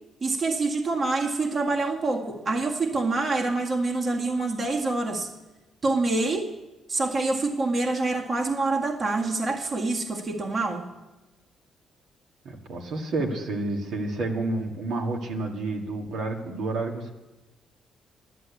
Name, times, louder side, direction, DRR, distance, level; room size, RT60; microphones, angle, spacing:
voice 1, 0.2-5.3 5.8-6.5 6.9-10.9, right 3 dB, 40° right, 1 dB, 1.9 m, -26 dB
voice 2, 12.5-17.1, right 2 dB, 75° right, 1 dB, 1.9 m, -30 dB
11.5 x 10.5 x 8.3 m, 1.1 s
cardioid pair, 90°, 0 cm